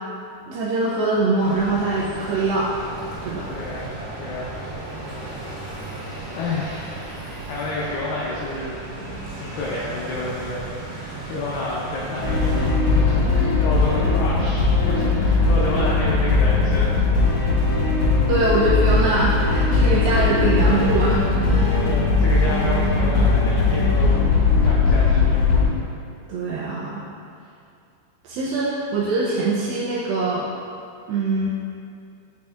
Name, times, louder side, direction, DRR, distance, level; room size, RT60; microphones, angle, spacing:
voice 1, 0.5-2.7 3.2-3.5 18.3-21.6 26.3-27.0 28.2-30.5 31.1-31.5, right 2 dB, 85° right, -7 dB, 2.1 m, -23 dB
sound 1, 1.4-12.7, right 2 dB, 70° right, 2.7 m, -35 dB
voice 2, 3.5-3.9 4.2-4.5 5.1-5.6 6.4-7.0 7.5-8.8 9.3-17.0 21.7-24.3 24.6-25.5, left 2 dB, 85° left, -5 dB, 1.9 m, -30 dB
sound 2, 12.2-25.7, left 3 dB, 65° left, 1.9 m, -19 dB
9.4 x 4.3 x 2.4 m, 2.5 s
omnidirectional pair, 4.7 m